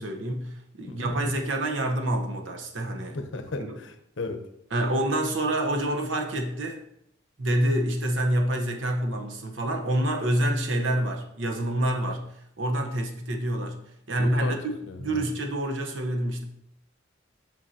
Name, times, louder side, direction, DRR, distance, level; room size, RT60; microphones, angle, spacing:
voice 1, 0.0-3.2 3.6-3.8 4.7-6.8 7.4-12.3 12.6-13.8 14.1-16.4, right 1 dB, 80° right, 4 dB, 1.0 m, -27 dB
voice 2, 0.9-1.2 3.1-4.4 14.2-14.5 14.9-15.3, left 2 dB, 75° left, 7 dB, 0.8 m, -35 dB
7.8 x 5.7 x 2.8 m, 0.76 s
head